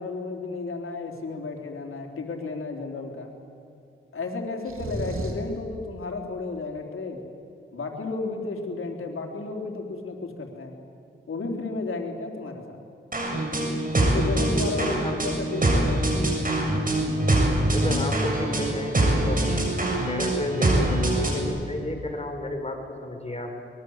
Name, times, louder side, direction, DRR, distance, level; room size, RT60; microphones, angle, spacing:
voice 1, 0.0-3.3 4.1-7.2 7.7-10.8 11.3-12.8 14.0-16.1, left 3 dB, 85° left, 2 dB, 3.6 m, -33 dB
sound 1, 4.6-5.5, right 1 dB, 85° right, 3.5 m, -32 dB
sound 2, 13.1-21.4, right 1 dB, 40° right, 7.4 m, -24 dB
voice 2, 14.8-15.1 17.7-19.4 20.1-23.5, left 2 dB, 30° left, 3 dB, 5.2 m, -32 dB
24.0 x 22.0 x 8.1 m, 2.6 s
cardioid pair, 50°, 21 cm